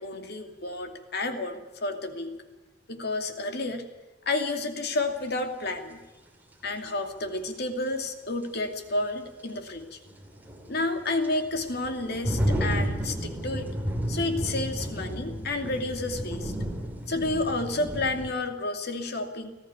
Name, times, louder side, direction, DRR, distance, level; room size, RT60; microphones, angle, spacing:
voice 1, 0.0-2.3 2.9-3.9 4.3-6.0 6.6-10.0 10.7-13.7 14.1-16.5 17.1-19.5, left 2 dB, 55° left, 6 dB, 2.5 m, -30 dB
sound 1, 5.3-5.4 7.9-8.0 8.4-8.5 10.1-18.3, equal, 10° right, 2.8 m, -32 dB
19.5 x 14.5 x 9.5 m, 1.1 s
head